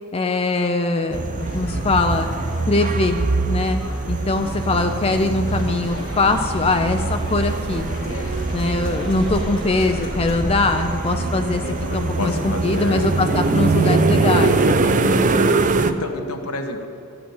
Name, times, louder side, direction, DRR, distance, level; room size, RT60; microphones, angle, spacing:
voice 1, 0.1-2.3 2.7-3.2 3.5-3.8 4.1-7.9 8.5-14.6, left 3 dB, 25° left, 6 dB, 0.5 m, -22 dB
sound 1, 1.1-15.9, right 3 dB, 35° right, 0.5 m, -22 dB
sound 2, 1.4-15.8, left 2 dB, 60° left, 1.2 m, -38 dB
sound 3, 4.4-10.6, right 1 dB, 20° right, 1.2 m, -36 dB
voice 2, 12.2-13.0 14.8-15.5 15.9-16.9, left 2 dB, 85° left, 5 dB, 1.3 m, -30 dB
13.5 x 8.8 x 7.1 m, 2.5 s
head